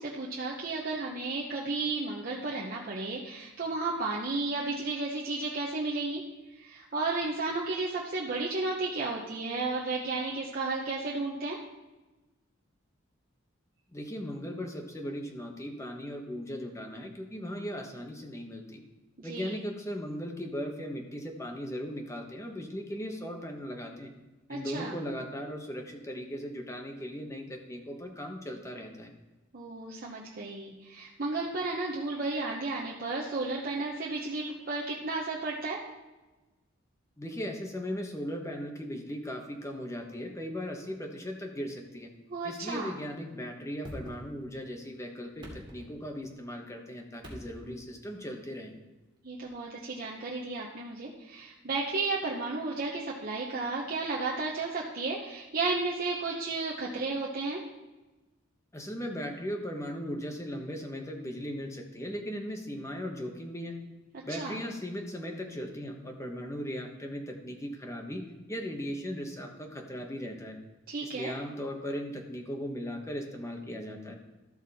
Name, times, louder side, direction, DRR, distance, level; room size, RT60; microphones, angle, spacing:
voice 1, 0.0-6.2 6.5-11.6 19.2-19.6 24.5-24.9 29.5-35.8 42.3-42.9 49.2-57.6 64.3-64.6 70.9-71.3, right 3 dB, 45° right, -4 dB, 1.0 m, -33 dB
voice 2, 13.9-18.8 19.2-24.1 24.5-29.1 37.2-42.1 42.4-48.7 58.7-63.8 64.2-70.6 71.0-74.1, equal, 15° left, 3 dB, 1.2 m, -38 dB
sound 1, 43.8-44.7 45.2-46.4 47.2-47.9 49.4-49.5, equal, 25° right, 2.4 m, -45 dB
13.0 x 6.0 x 4.2 m, 1.1 s
head